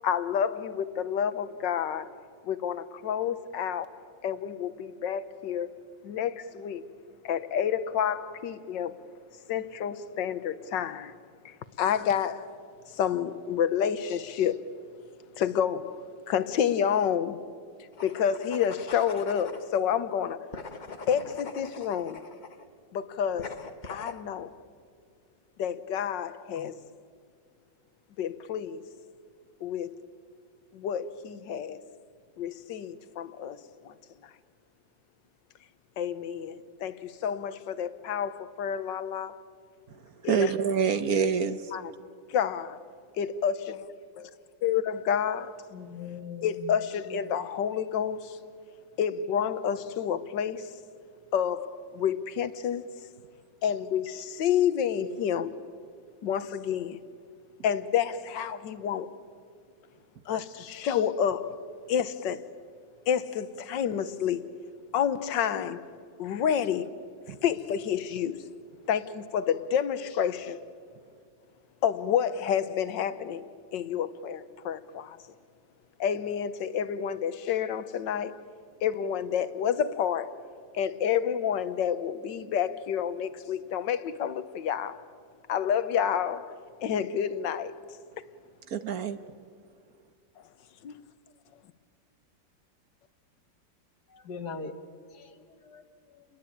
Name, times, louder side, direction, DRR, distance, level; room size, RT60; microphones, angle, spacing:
voice 1, 0.0-2.1 2.4-3.9 4.2-6.8 7.2-8.9 9.5-11.1 11.4-12.5 12.9-14.6 15.4-17.4 18.0-20.5 21.1-22.2 22.9-23.6 23.9-24.5 25.6-26.7 28.2-28.9 29.6-30.0 30.7-31.8 32.4-33.6 33.8-33.9 36.0-39.4 40.2-40.5 41.7-41.8 42.3-42.8 43.2-43.8 44.2-44.3 44.6-45.6 46.4-48.4 49.0-50.7 51.3-52.8 53.6-55.6 56.2-57.0 57.6-59.1 60.3-61.6 61.9-62.4 63.1-64.5 64.9-65.8 66.2-66.9 67.3-68.4 68.9-70.6 71.8-73.5 73.7-75.2 76.0-78.4 78.8-80.3 80.7-85.0 85.5-87.7 90.8-90.9, left 8 dB, 75° left, 1.6 m, -29 dB
sound 1, 17.9-19.7 20.5-22.7 23.4-24.2, left 4 dB, 30° left, 1.0 m, -43 dB
voice 2, 40.3-41.7 67.3-67.4 88.7-89.2, right 6 dB, 55° right, 1.3 m, -26 dB
voice 3, 45.7-46.7 47.1-47.2 94.1-94.7 95.1-95.3 95.6-95.8 96.2-96.3, left 5 dB, 60° left, 2.1 m, -40 dB
30.0 x 21.0 x 8.7 m
omnidirectional pair, 2.0 m